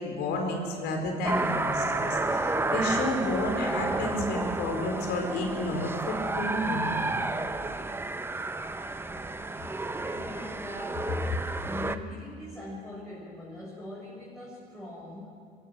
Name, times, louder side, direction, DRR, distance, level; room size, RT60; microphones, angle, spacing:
voice 1, 0.0-7.2, left 1 dB, 80° left, 3 dB, 4.5 m, -31 dB
sound 1, 1.2-12.0, right 2 dB, 15° right, 0.9 m, -31 dB
voice 2, 10.0-11.2 11.6-15.4, left 1 dB, 5° left, -8 dB, 6.6 m, -42 dB
23.5 x 15.5 x 7.7 m, 2.4 s
cardioid pair, 110°, 17 cm